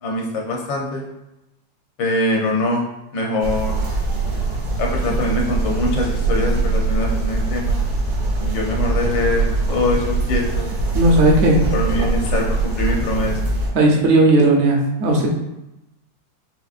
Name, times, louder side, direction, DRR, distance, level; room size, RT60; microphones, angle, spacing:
voice 1, 0.0-1.1 2.0-2.8 3.1-3.8 4.8-7.8 8.5-10.7 11.7-13.4, left 2 dB, 75° left, 0 dB, 1.5 m, -23 dB
sound 1, 3.4-13.7, right 3 dB, 80° right, 2.0 m, -22 dB
voice 2, 10.9-11.6 13.7-15.3, right 1 dB, 60° right, -1 dB, 0.7 m, -15 dB
5.1 x 2.9 x 2.4 m, 0.93 s
omnidirectional pair, 2.0 m